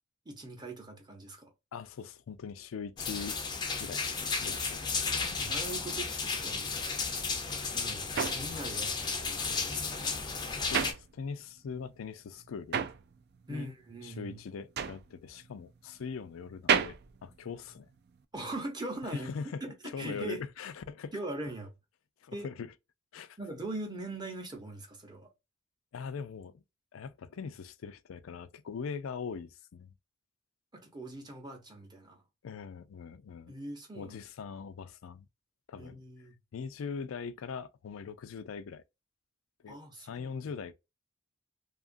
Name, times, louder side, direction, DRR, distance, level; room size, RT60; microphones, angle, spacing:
voice 1, 0.3-1.5 5.2-6.9 7.7-10.2 11.8-11.9 13.5-14.4 18.3-19.3 19.6-20.4 21.1-21.7 22.3-22.5 23.4-25.3 30.7-32.2 33.5-34.2 35.8-36.3 39.7-40.3, right 2 dB, 20° right, 0.7 m, -41 dB
voice 2, 1.7-3.4 3.8-4.9 10.7-12.9 13.5-13.7 14.0-17.9 19.0-21.2 22.2-22.7 23.1-23.4 25.9-26.6 26.9-29.9 32.4-33.5 33.9-35.3 35.7-36.0 36.5-38.8 39.6-40.7, left 6 dB, 85° left, 0.4 m, -41 dB
sound 1, 3.0-10.9, left 4 dB, 20° left, 0.4 m, -33 dB
sound 2, 7.4-11.7 12.0-18.2, right 7 dB, 50° right, 0.3 m, -34 dB
2.8 x 2.4 x 2.4 m
head